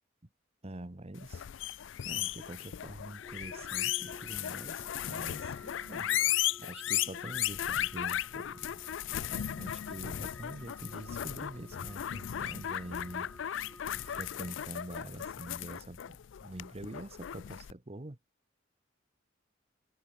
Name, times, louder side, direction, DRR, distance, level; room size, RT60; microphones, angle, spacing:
voice 1, 0.6-1.4 2.0-6.3 6.6-8.8 9.2-18.2, right 1 dB, 35° right, 1.1 m, -45 dB
sound 1, 1.2-17.7, left 11 dB, 70° left, 0.4 m, -36 dB
sound 2, 3.2-15.2, left 1 dB, 5° left, 1.9 m, -54 dB
head